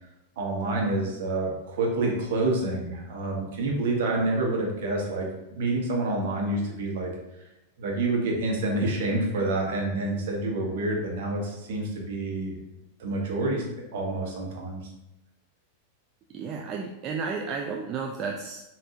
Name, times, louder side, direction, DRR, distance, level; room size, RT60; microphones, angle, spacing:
voice 1, 0.4-7.1 7.8-12.6 13.0-13.7 13.9-14.9, right 2 dB, 55° right, -1 dB, 1.0 m, -28 dB
voice 2, 16.3-18.6, right 5 dB, 35° right, 2 dB, 0.3 m, -32 dB
5.4 x 2.5 x 2.8 m, 0.94 s
figure-of-eight pair, 90°, 0 cm